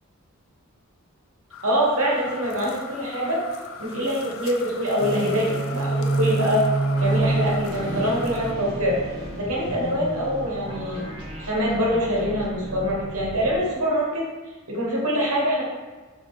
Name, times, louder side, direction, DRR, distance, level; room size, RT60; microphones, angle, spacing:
sound 1, 1.5-8.5, left 5 dB, 65° left, 0.4 m, -40 dB
voice 1, 1.6-3.4 3.8-6.7 7.0-9.0 9.3-11.0 11.4-14.2 14.7-15.6, equal, 90° right, -3 dB, 1.2 m, -24 dB
Great echoing foghorn, 5.0-9.0, right 2 dB, 15° left, 1.1 m, -26 dB
sound 2, 6.9-13.6, equal, 20° right, 1.1 m, -35 dB
3.6 x 2.8 x 4.0 m, 1.3 s
head